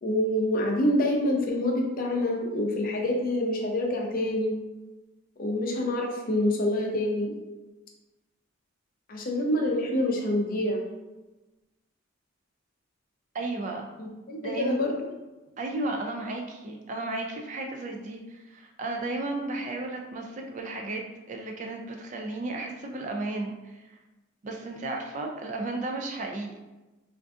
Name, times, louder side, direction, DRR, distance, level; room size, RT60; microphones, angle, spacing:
voice 1, 0.0-4.5 5.4-7.3 9.1-10.8 14.0-15.1, left 1 dB, 45° left, 1 dB, 0.5 m, -26 dB
voice 2, 13.3-13.9 14.4-14.8 15.6-24.0 24.4-26.6, right 2 dB, 35° right, 2 dB, 0.3 m, -34 dB
3.5 x 2.5 x 2.4 m, 1.1 s
head